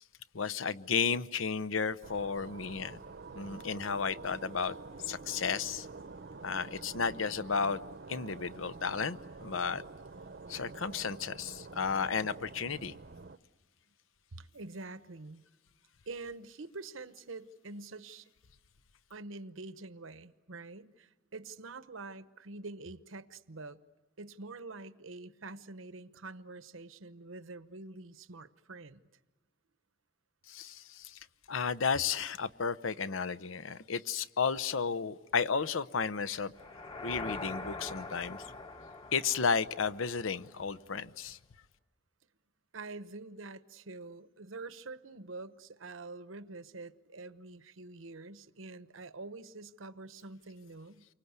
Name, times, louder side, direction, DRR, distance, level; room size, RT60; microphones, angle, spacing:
voice 1, 0.3-3.0 3.3-4.8 5.1-5.9 6.4-7.8 8.1-9.8 10.5-12.9 30.5-31.2 31.5-36.5 37.0-38.4 39.1-41.4, left 5 dB, 80° left, 0.8 m, -33 dB
sound 1, 2.0-13.4, right 3 dB, 55° right, 0.8 m, -48 dB
voice 2, 14.3-15.5 16.1-18.3 19.1-23.8 24.2-29.0 42.7-51.1, right 3 dB, 85° right, 1.0 m, -46 dB
sound 2, 36.5-40.7, left 3 dB, 25° left, 1.1 m, -43 dB
29.5 x 24.5 x 8.1 m
head